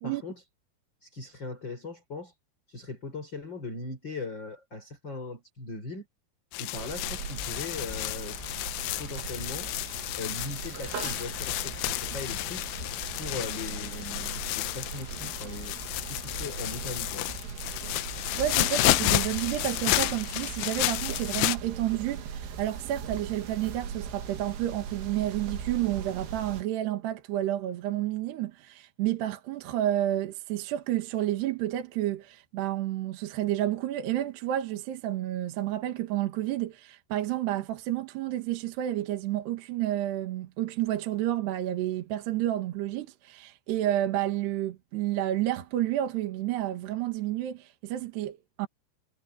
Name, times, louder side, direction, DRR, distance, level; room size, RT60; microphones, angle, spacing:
voice 1, 0.0-0.3 1.0-2.3 2.7-6.1 6.6-8.6 9.0-9.7 10.1-12.7 13.1-15.8 16.1-17.3, left 3 dB, 25° left, 4.4 m, -39 dB
sound 1, 6.5-21.6, left 20 dB, 85° left, 3.1 m, -31 dB
sound 2, 6.7-26.6, right 7 dB, 90° right, 5.5 m, -39 dB
voice 2, 18.4-48.7, right 13 dB, 65° right, 3.5 m, -30 dB
omnidirectional pair, 5.6 m